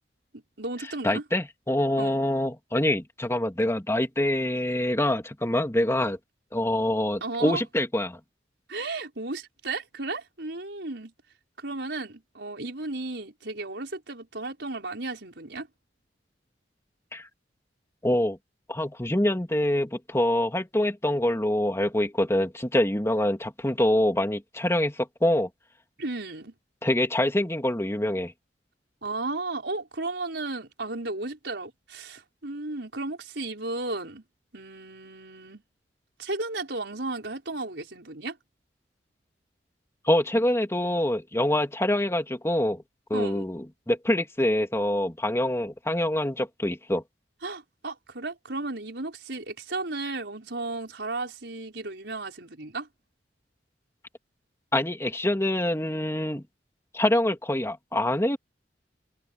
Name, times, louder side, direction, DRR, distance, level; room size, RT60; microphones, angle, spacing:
voice 1, 0.3-1.2 2.0-2.2 7.2-7.6 8.7-11.1 11.6-15.7 26.0-26.5 29.0-34.2 34.5-35.6 36.2-38.4 43.1-43.4 47.4-52.9, right 2 dB, 70° right, 6.0 m, -34 dB
voice 2, 1.0-6.2 6.5-8.2 17.1-17.3 18.0-18.4 18.7-25.5 26.8-28.3 40.0-42.8 43.1-47.0 54.7-56.4 56.9-58.4, left 1 dB, 15° left, 2.5 m, -25 dB
head